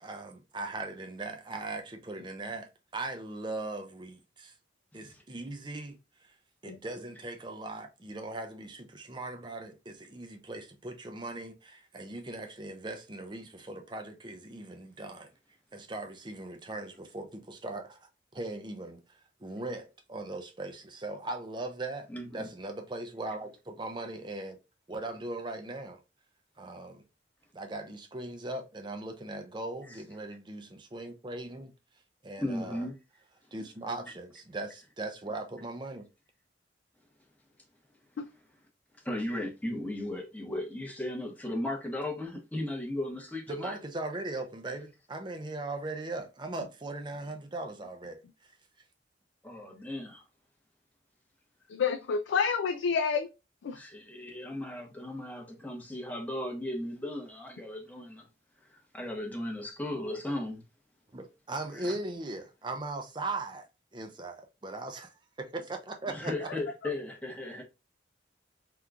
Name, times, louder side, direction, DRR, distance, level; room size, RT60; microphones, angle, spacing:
voice 1, 0.0-4.5 4.9-6.3 6.6-15.3 15.7-24.6 24.9-26.0 26.6-27.0 27.5-31.7 32.2-32.9 33.5-36.1 43.5-48.5 61.1-63.7 63.9-66.5, right 2 dB, 25° right, 0.5 m, -39 dB
voice 2, 22.1-22.5 29.9-30.0 32.4-33.0 39.0-43.8 49.4-50.2 53.7-58.3 58.7-60.6 61.7-61.9 66.1-67.6, left 1 dB, 10° left, 0.9 m, -36 dB
voice 3, 51.7-53.3 53.6-53.8 66.5-66.6, left 6 dB, 80° left, 0.3 m, -29 dB
3.6 x 2.9 x 2.3 m
head